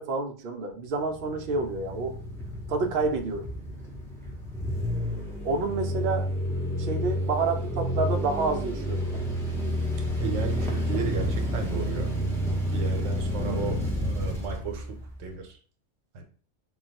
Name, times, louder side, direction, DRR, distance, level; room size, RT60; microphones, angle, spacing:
voice 1, 0.0-2.2 2.7-3.5 5.4-6.3 6.8-9.2 13.4-13.8, right 3 dB, 65° right, 5 dB, 0.6 m, -29 dB
sound 1, 1.0-15.3, equal, 5° left, 0.4 m, -30 dB
voice 2, 10.2-12.1 12.7-13.8 14.0-15.6 16.1-16.2, right 6 dB, 85° right, 4 dB, 1.0 m, -34 dB
2.3 x 2.2 x 3.9 m, 0.42 s
omnidirectional pair, 1.3 m